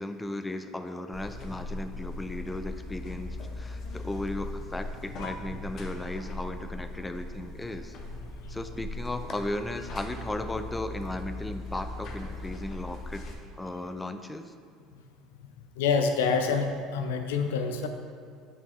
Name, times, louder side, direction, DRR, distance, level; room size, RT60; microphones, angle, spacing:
voice 1, 0.0-7.9 8.5-13.2 13.6-14.5, left 1 dB, 10° left, 8 dB, 0.5 m, -36 dB
Buzz, 1.1-13.3, left 2 dB, 55° left, 1.0 m, -39 dB
voice 2, 15.8-17.9, left 5 dB, 85° left, 6 dB, 0.5 m, -27 dB
7.0 x 6.0 x 3.1 m, 2.3 s
supercardioid pair, 85°, 0 cm